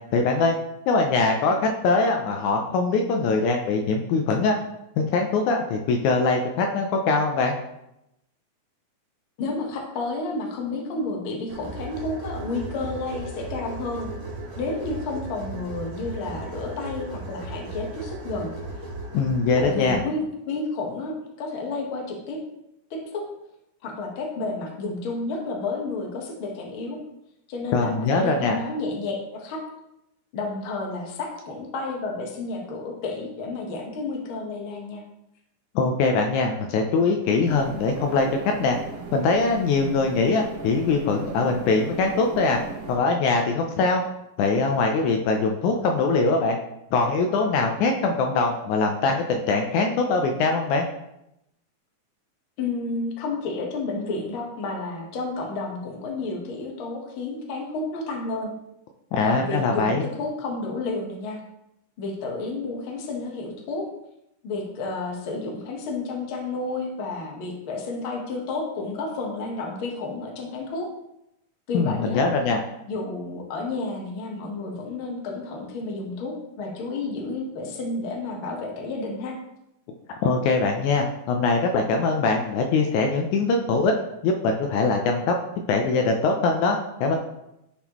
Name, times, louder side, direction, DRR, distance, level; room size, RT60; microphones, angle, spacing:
voice 1, 0.1-0.6 0.9-4.6 5.0-7.6 19.1-20.1 27.7-28.6 35.8-38.8 39.1-42.6 42.9-44.0 44.4-46.6 46.9-50.8 59.1-60.1 71.7-72.6 80.2-83.9 84.2-85.4 85.7-87.2, left 3 dB, 80° left, 2 dB, 2.0 m, -22 dB
voice 2, 9.4-14.1 14.6-18.5 19.6-22.4 22.9-23.2 23.8-27.0 27.5-29.6 30.3-35.0 52.6-58.5 59.2-61.4 62.0-63.8 64.4-70.9 71.7-72.3 72.9-79.3, left 3 dB, 55° left, 0 dB, 1.6 m, -31 dB
sound 1, 11.5-20.0, right 2 dB, 50° right, 1.7 m, -36 dB
sound 2, 37.4-43.0, right 4 dB, 80° right, 2.7 m, -38 dB
11.0 x 4.1 x 3.0 m, 0.84 s
omnidirectional pair, 3.6 m